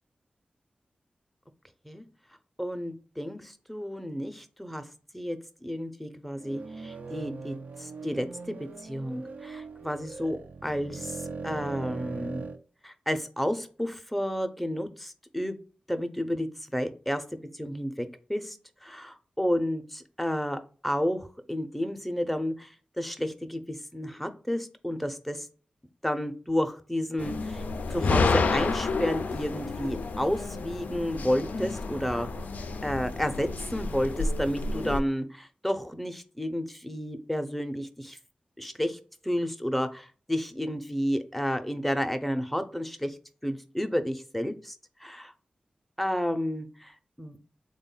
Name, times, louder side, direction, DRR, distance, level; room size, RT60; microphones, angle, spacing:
voice 1, 2.6-4.8 5.1-8.5 8.8-11.2 11.4-12.5 12.8-15.6 15.9-17.2 17.5-18.6 18.8-25.5 26.0-27.6 27.9-32.3 32.8-38.2 38.6-43.2 43.4-44.8 45.0-45.3 46.0-47.4, equal, ahead, 8 dB, 0.5 m, -31 dB
sound 1, 6.4-12.6, right 4 dB, 65° right, 0.4 m, -40 dB
sound 2, 27.2-35.0, left 3 dB, 80° left, 0.3 m, -30 dB
3.4 x 2.2 x 3.8 m, 0.39 s
cardioid pair, 55°, 3 cm